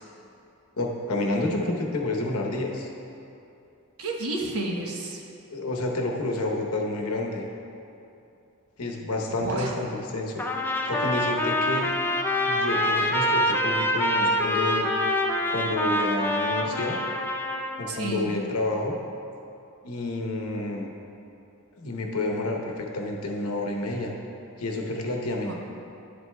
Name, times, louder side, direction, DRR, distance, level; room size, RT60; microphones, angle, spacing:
voice 1, 0.8-2.9 5.5-7.5 8.8-10.4 10.9-11.9 12.5-14.9 15.5-17.0 17.8-18.9 19.8-20.9 21.8-24.1 24.6-25.5, left 2 dB, 75° left, 1 dB, 0.9 m, -29 dB
voice 2, 4.0-5.2 9.4-9.8 17.9-18.3 25.4-25.5, right 2 dB, 75° right, 0 dB, 1.0 m, -31 dB
Trumpet, 10.4-17.8, left 1 dB, 10° left, 0.4 m, -25 dB
10.5 x 7.9 x 2.2 m, 2.8 s
head